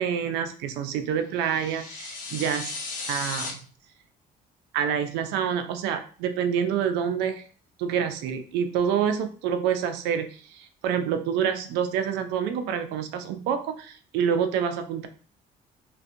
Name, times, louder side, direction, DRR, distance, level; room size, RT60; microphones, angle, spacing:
voice 1, 0.0-2.7 3.1-3.6 4.7-7.4 7.8-15.1, right 8 dB, 90° right, 8 dB, 0.4 m, -27 dB
sound 1, 1.4-3.5, left 3 dB, 50° left, 0.6 m, -35 dB
2.5 x 2.2 x 2.5 m, 0.41 s
cardioid pair, 110°, 17 cm